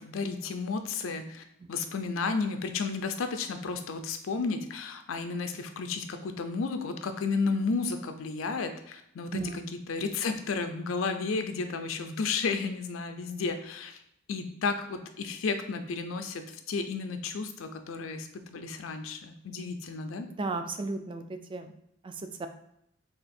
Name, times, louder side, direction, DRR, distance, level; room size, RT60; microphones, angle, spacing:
voice 1, 0.0-14.0 14.3-20.3, left 4 dB, 80° left, 7 dB, 0.4 m, -32 dB
voice 2, 20.3-21.7 22.0-22.5, right 3 dB, 25° right, 8 dB, 0.3 m, -35 dB
3.5 x 2.4 x 4.1 m, 0.75 s
head